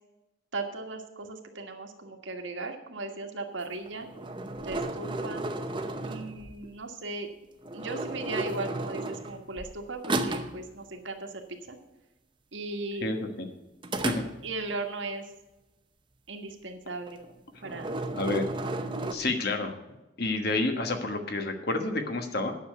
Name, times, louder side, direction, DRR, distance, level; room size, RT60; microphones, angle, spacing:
voice 1, 0.5-4.1 4.6-5.5 6.0-7.3 7.7-11.3 11.7-11.8 12.5-13.1 14.4-15.3 16.3-17.2 17.6-18.0 18.6-18.7, right 3 dB, 75° right, 4 dB, 1.6 m, -37 dB
sound 1, 3.9-6.7 7.6-9.7 10.0-10.6 13.8-14.7 17.1-17.3 17.6-19.1, right 2 dB, 25° right, 0.7 m, -33 dB
voice 2, 13.0-13.5 14.0-14.2 18.2-18.5 19.1-19.8 20.2-22.5, left 2 dB, 55° left, 5 dB, 1.3 m, -29 dB
9.7 x 6.7 x 7.8 m, 1.0 s
head